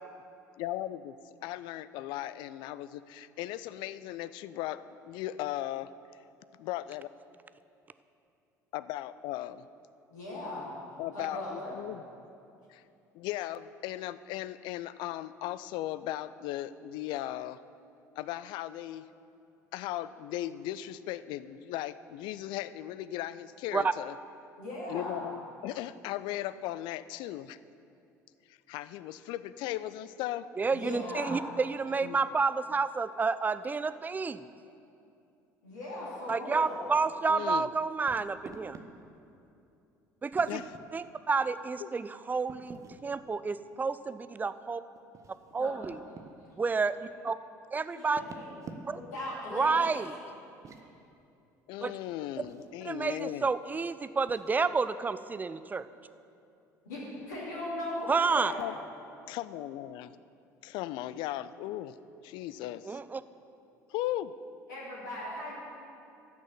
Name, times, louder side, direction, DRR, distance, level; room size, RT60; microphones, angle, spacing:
voice 1, 0.6-1.1 1.4-5.9 6.6-7.1 8.7-9.6 11.0-12.0 12.7-12.8 13.1-17.6 18.2-19.0 19.7-24.1 24.9-27.6 28.5-30.5 32.0-32.2 37.3-37.7 40.5-40.6 41.8-41.9 51.7-53.5 58.6-58.7 59.3-60.1 60.6-61.9 62.2-63.0 63.9-64.3, left 14 dB, 55° left, 15 dB, 0.4 m, -37 dB
voice 2, 10.1-10.7 11.1-11.8 24.6-25.3 30.7-31.4 35.6-36.9 45.6-45.7 47.8-48.5 48.9-50.2 56.8-58.8 64.7-65.6, left 1 dB, 70° left, -6 dB, 2.4 m, -38 dB
voice 3, 30.6-34.5 36.3-38.8 40.2-40.6 40.9-44.8 45.5-46.0 46.6-47.4 47.7-48.2 48.9-49.0 49.5-50.1 51.8-51.9 52.8-55.9 58.1-58.5 62.9-63.2, right 4 dB, 20° right, 14 dB, 0.4 m, -30 dB
sound 1, 38.1-38.9 40.3-40.8 42.5-43.0 44.9-46.3 48.0-49.1 50.5-50.9 52.4-52.7 54.3-54.5, right 4 dB, 35° right, 1.0 m, -48 dB
12.0 x 6.3 x 7.3 m, 2.7 s
figure-of-eight pair, 60°, 9 cm